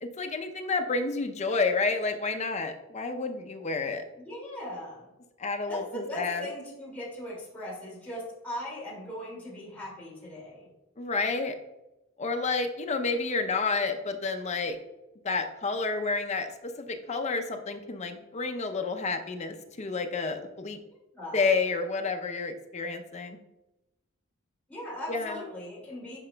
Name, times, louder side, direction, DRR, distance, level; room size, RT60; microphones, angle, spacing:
voice 1, 0.0-4.0 5.4-6.5 11.0-11.6 12.2-14.8 15.2-20.8 21.3-23.4 25.1-25.4, left 4 dB, 35° left, 5 dB, 0.5 m, -30 dB
voice 2, 4.2-5.1 5.7-10.7 21.1-21.5 24.7-26.2, equal, 10° left, -6 dB, 2.3 m, -39 dB
9.8 x 4.7 x 2.2 m, 0.96 s
head